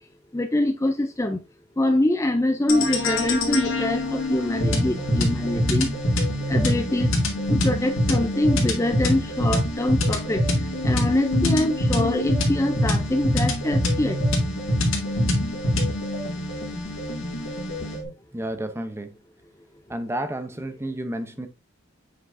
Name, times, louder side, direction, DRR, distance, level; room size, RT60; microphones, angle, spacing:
voice 1, 0.3-1.4 1.8-5.9 6.5-7.1 7.5-10.4 10.8-14.2, left 1 dB, 15° left, 0.4 m, -24 dB
sound 1, 2.7-18.0, left 1 dB, 80° left, 2.4 m, -24 dB
voice 2, 18.3-19.1 19.9-21.5, right 1 dB, 10° right, 0.8 m, -31 dB
7.9 x 5.8 x 2.6 m
head